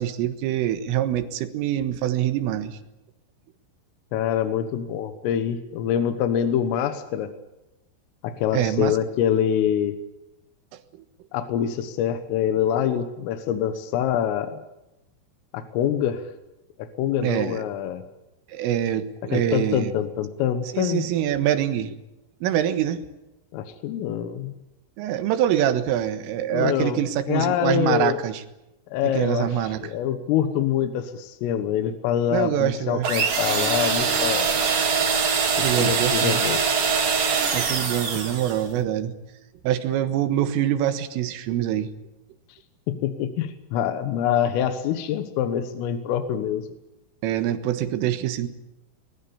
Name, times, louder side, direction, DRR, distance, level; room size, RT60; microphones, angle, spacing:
voice 1, 0.0-2.8 8.5-9.0 17.2-17.6 18.5-19.9 20.7-21.9 22.4-23.0 25.0-28.4 29.0-29.8 32.3-33.1 35.6-36.4 37.5-39.1 39.6-41.9 47.2-48.5, right 11 dB, 80° right, 9 dB, 4.0 m, -24 dB
voice 2, 4.1-7.3 8.2-10.0 11.3-14.6 15.5-16.3 16.8-18.0 19.3-21.1 23.5-24.5 26.5-28.2 28.9-34.6 35.5-36.6 42.5-42.6 42.9-46.7, left 9 dB, 85° left, 9 dB, 3.9 m, -25 dB
sound 1, 33.0-38.6, right 5 dB, 45° right, 4.4 m, -23 dB
22.5 x 21.0 x 8.6 m, 0.94 s
omnidirectional pair, 5.8 m